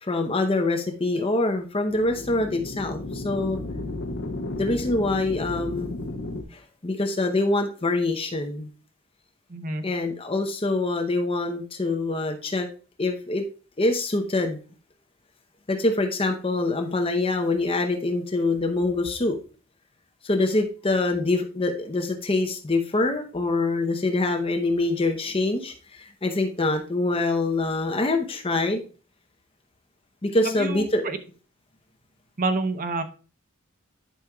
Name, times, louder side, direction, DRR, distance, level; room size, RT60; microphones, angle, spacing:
voice 1, 0.0-3.6 4.6-5.9 6.5-8.7 9.8-12.7 13.0-13.4 13.8-14.6 15.7-19.4 20.2-28.8 30.2-31.0, left 2 dB, 25° left, 5 dB, 0.7 m, -25 dB
sound 1, 1.9-6.4, left 2 dB, 55° left, 0.8 m, -33 dB
voice 2, 9.5-9.8 30.4-31.2 32.4-33.0, right 3 dB, 40° right, 8 dB, 0.7 m, -28 dB
11.0 x 5.2 x 2.3 m, 0.36 s
head